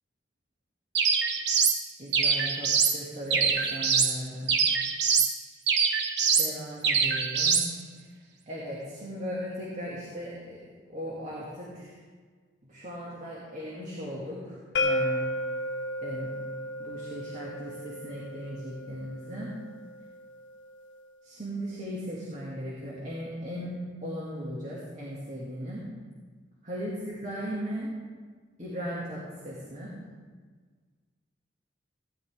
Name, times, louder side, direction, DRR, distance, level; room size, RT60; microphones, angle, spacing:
sound 1, 1.0-1.8 2.1-3.0 3.3-4.1 4.5-5.3 5.7-6.5 6.8-7.7, right 6 dB, 65° right, 1.3 m, -24 dB
voice 1, 2.0-4.6 6.4-7.7 8.5-10.6 10.9-12.0 12.6-15.3 16.0-16.3 16.8-19.5 21.2-23.7 24.0-25.8 26.6-27.9 28.6-29.9, equal, 40° right, -6 dB, 2.3 m, -37 dB
sound 2, 14.8-20.6, left 1 dB, 75° left, 0.6 m, -33 dB
16.5 x 11.0 x 3.6 m, 1.5 s
head